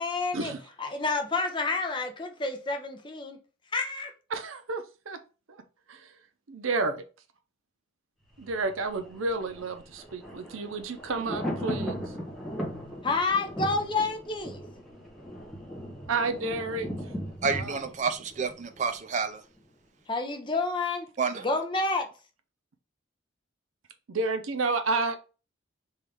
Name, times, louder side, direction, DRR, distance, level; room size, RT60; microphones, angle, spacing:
voice 1, 0.0-0.5 0.8-3.4 3.7-4.1 13.0-14.6 20.1-21.1 21.4-22.0, left 3 dB, 25° left, 0.6 m, -29 dB
voice 2, 4.3-5.2 5.5-5.6 5.9-6.1 6.5-7.0 8.4-12.0 16.1-16.9 17.6-17.8 24.1-25.3, right 3 dB, 90° right, 0.6 m, -31 dB
Thunder, 8.3-19.3 19.6-19.7, equal, ahead, 1.0 m, -38 dB
voice 3, 17.4-19.4 21.2-21.6, right 5 dB, 35° right, 0.4 m, -30 dB
3.7 x 3.0 x 3.5 m
head